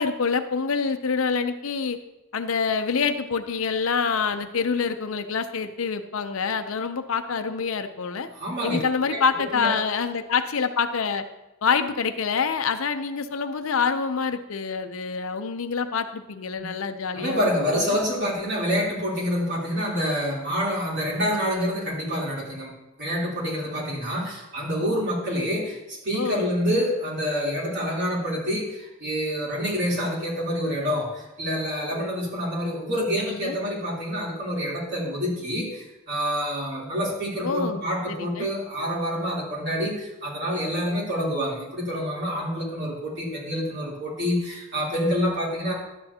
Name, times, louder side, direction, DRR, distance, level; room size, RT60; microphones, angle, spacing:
voice 1, 0.0-2.0 2.3-8.3 8.6-11.2 11.6-17.5 17.8-18.0 26.1-26.4 32.9-33.6 37.4-37.8 38.1-38.5, left 5 dB, 70° left, 8 dB, 0.6 m, -26 dB
voice 2, 8.3-8.8 9.1-9.2 9.5-9.7 16.6-16.7 17.1-45.7, equal, 55° right, -5 dB, 3.3 m, -27 dB
11.5 x 9.0 x 2.8 m, 0.98 s
head